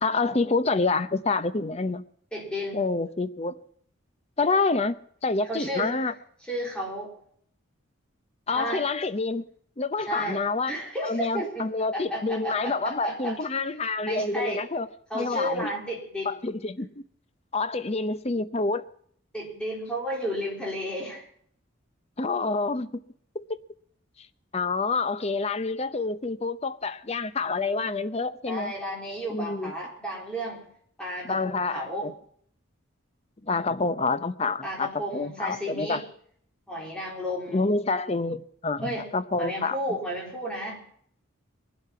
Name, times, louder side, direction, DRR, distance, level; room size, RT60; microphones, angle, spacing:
voice 1, 0.0-2.0 2.7-3.5 4.4-5.0 5.2-6.1 8.5-9.4 9.8-10.7 11.0-14.9 15.1-15.7 16.3-16.9 17.5-18.8 22.2-22.9 23.3-23.6 24.5-28.7 29.3-29.7 31.2-32.1 33.5-34.9 35.1-36.0 37.5-39.8, left 3 dB, 30° left, 0.7 m, -27 dB
voice 2, 2.3-2.8 5.4-6.0 6.5-7.1 8.5-8.8 10.0-11.5 11.9-13.4 14.1-14.6 15.1-16.4 19.3-21.3 28.5-30.7 31.0-32.1 34.6-36.0 36.7-37.6 38.8-39.1 39.4-40.8, equal, 5° left, 3.9 m, -33 dB
21.5 x 8.2 x 5.8 m
head